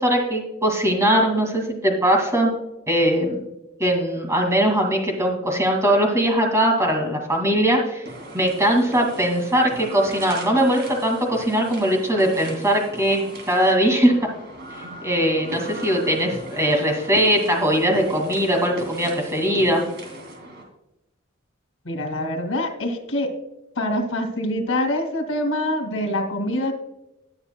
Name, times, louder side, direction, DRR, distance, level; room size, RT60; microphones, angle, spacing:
voice 1, 0.0-2.5 2.9-3.4 3.8-14.3 14.7-19.8, equal, 15° right, 1 dB, 2.2 m, -20 dB
sound 1, 8.0-20.6, right 1 dB, 55° right, 2.6 m, -38 dB
voice 2, 21.8-23.3 23.8-26.7, left 1 dB, 85° left, 5 dB, 2.2 m, -25 dB
19.0 x 6.7 x 2.2 m, 0.92 s
head